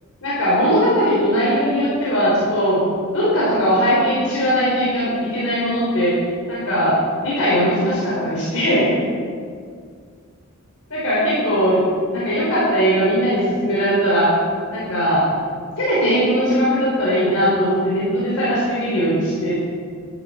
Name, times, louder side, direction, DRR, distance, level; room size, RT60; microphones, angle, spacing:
voice 1, 0.2-2.8 3.1-6.1 6.5-6.9 7.2-9.0 10.9-11.8 12.1-14.3 14.7-15.2 15.8-19.6, equal, 80° left, -8 dB, 4.6 m, -19 dB
13.5 x 13.0 x 5.2 m, 2.1 s
head